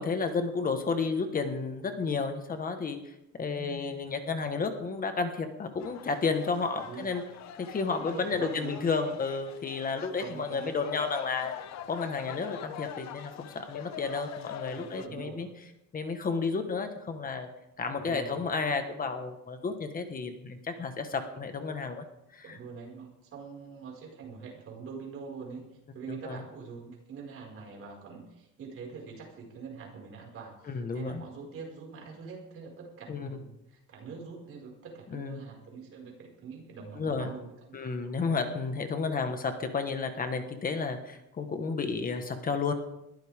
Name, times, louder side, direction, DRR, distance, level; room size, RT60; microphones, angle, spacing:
voice 1, 0.0-7.2 7.6-11.5 11.9-15.5 15.9-17.5 17.8-22.0 22.3-22.6 26.1-26.4 30.7-31.2 33.1-33.3 35.1-35.4 36.9-37.3 37.7-42.7, left 4 dB, 25° left, 7 dB, 1.5 m, -32 dB
voice 2, 3.5-3.9 6.8-7.1 8.0-9.1 10.2-10.7 14.7-15.5 17.9-18.4 22.4-25.6 25.9-37.9, right 5 dB, 45° right, -1 dB, 5.5 m, -44 dB
sound 1, 5.8-15.1, left 10 dB, 60° left, 1.0 m, -44 dB
21.5 x 14.5 x 3.7 m, 0.87 s
cardioid pair, 160°, 31 cm